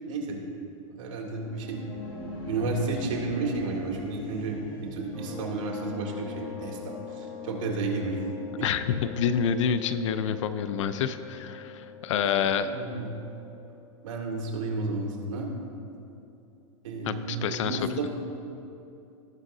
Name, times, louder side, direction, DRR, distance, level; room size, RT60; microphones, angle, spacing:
voice 1, 0.1-0.4 0.9-1.8 2.5-8.2 8.6-8.7 12.2-12.3 12.7-13.2 14.0-15.5 16.8-18.1, right 3 dB, 75° right, 0 dB, 2.1 m, -32 dB
sound 1, 1.3-5.9, left 1 dB, 25° left, 1.6 m, -40 dB
sound 2, 5.1-13.7, left 6 dB, ahead, 1.7 m, -43 dB
voice 2, 8.6-12.7 17.1-18.1, left 7 dB, 65° left, 11 dB, 0.6 m, -28 dB
17.5 x 6.3 x 2.7 m, 2.8 s
supercardioid pair, 160°, 17 cm